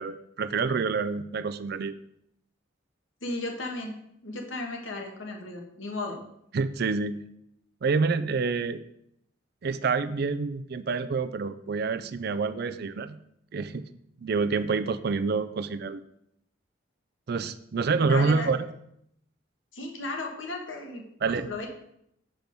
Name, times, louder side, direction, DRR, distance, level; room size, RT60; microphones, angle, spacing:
voice 1, 0.0-1.9 6.5-7.2 7.8-8.8 9.6-13.2 13.5-13.8 14.2-16.0 17.3-18.7 21.2-21.5, right 4 dB, 55° right, 13 dB, 0.4 m, -27 dB
voice 2, 3.2-3.9 4.2-6.2 18.0-18.6 19.7-21.7, left 2 dB, 80° left, 2 dB, 1.3 m, -35 dB
6.8 x 4.6 x 5.2 m, 0.74 s
head